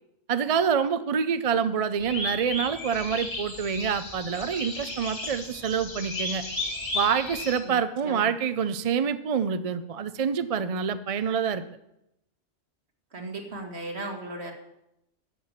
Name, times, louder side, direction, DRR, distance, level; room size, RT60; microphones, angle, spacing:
voice 1, 0.3-6.4 6.9-11.6, right 7 dB, 45° right, 12 dB, 0.5 m, -26 dB
sound 1, 2.0-7.6, left 2 dB, 70° left, 2.9 m, -34 dB
voice 2, 13.1-14.5, right 2 dB, 60° right, 2 dB, 2.2 m, -36 dB
13.0 x 5.9 x 8.8 m, 0.84 s
omnidirectional pair, 1.2 m